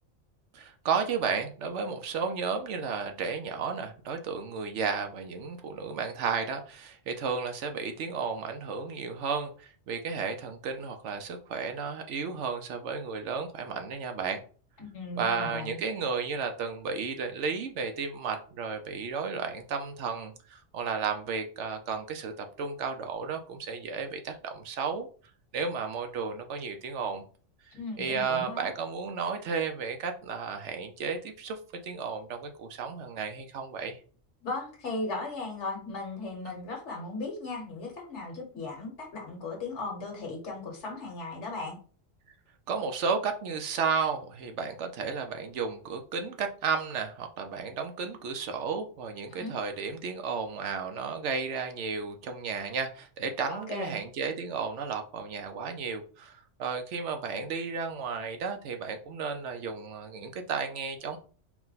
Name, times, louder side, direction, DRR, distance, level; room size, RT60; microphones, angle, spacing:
voice 1, 0.5-14.4 15.2-25.1 25.5-27.2 27.7-34.0 42.7-61.2, right 5 dB, 70° right, 0.9 m, -33 dB
voice 2, 14.8-15.8 27.7-28.7 34.4-41.8 49.3-49.5 53.5-54.0, left 3 dB, 65° left, 1.4 m, -37 dB
4.6 x 2.1 x 3.9 m
omnidirectional pair, 1.3 m